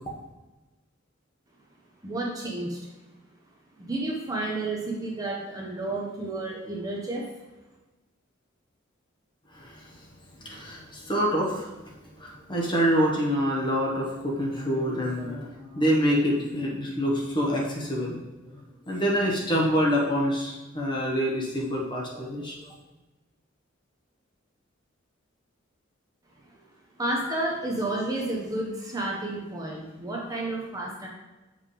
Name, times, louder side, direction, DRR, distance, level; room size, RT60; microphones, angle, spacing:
voice 1, 2.0-2.8 3.8-7.3 26.5-26.6 27.0-31.1, right 2 dB, 20° right, -2 dB, 0.9 m, -31 dB
voice 2, 9.5-10.1 10.4-18.2 18.4-22.7, equal, 25° left, -3 dB, 1.3 m, -27 dB
7.2 x 5.1 x 3.4 m, 1.1 s
head